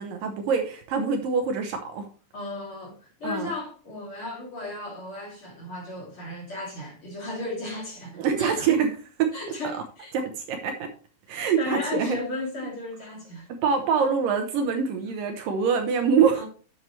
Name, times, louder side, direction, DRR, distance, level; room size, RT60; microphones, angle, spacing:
voice 1, 0.0-2.1 3.2-3.5 8.2-9.6 10.1-10.9 11.3-12.2 13.5-16.4, right 6 dB, 70° right, 2.5 m, -25 dB
voice 2, 2.3-8.6 9.3-10.1 11.3-13.5 15.0-15.1 16.3-16.4, left 2 dB, 35° left, 3.4 m, -35 dB
10.5 x 7.7 x 3.2 m
omnidirectional pair, 4.5 m